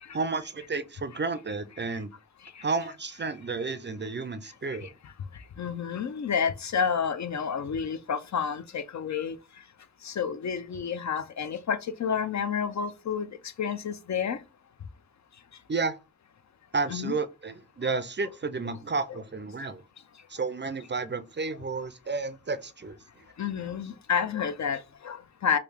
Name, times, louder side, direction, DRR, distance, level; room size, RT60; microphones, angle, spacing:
voice 1, 0.1-2.1 2.6-4.9 15.7-16.0 16.7-19.8 20.3-23.0, right 4 dB, 35° right, 0.4 m, -31 dB
voice 2, 4.7-5.1 5.6-9.4 10.0-13.3 13.6-14.4 16.9-17.1 17.8-17.9 23.4-25.6, left 7 dB, 55° left, 0.5 m, -30 dB
3.1 x 2.3 x 3.4 m
cardioid pair, 50°, 34 cm